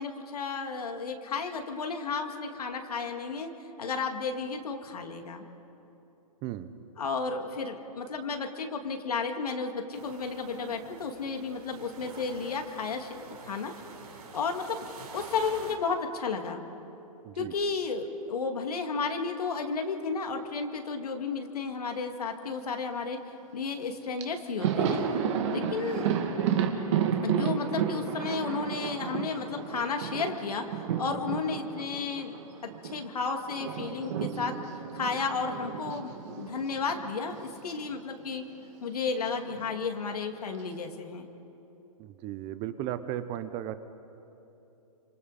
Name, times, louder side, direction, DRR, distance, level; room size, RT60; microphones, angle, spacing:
voice 1, 0.0-3.5 3.8-5.4 7.0-13.7 14.3-16.6 17.4-23.2 23.5-25.0 25.5-26.1 27.2-30.7 31.0-32.3 32.6-34.6 34.9-38.4 38.8-41.3, left 4 dB, 85° left, 4 dB, 2.3 m, -33 dB
sound 1, 9.9-15.8, right 5 dB, 85° right, 3.8 m, -47 dB
Thunder, 23.8-23.9 24.2-33.0 33.3-37.6 37.8-38.0 39.2-39.9, right 7 dB, 50° right, 2.3 m, -32 dB
voice 2, 42.0-43.8, right 12 dB, 30° right, 12 dB, 0.8 m, -35 dB
27.5 x 26.0 x 4.2 m, 3.0 s
hypercardioid pair, 145°, 19 cm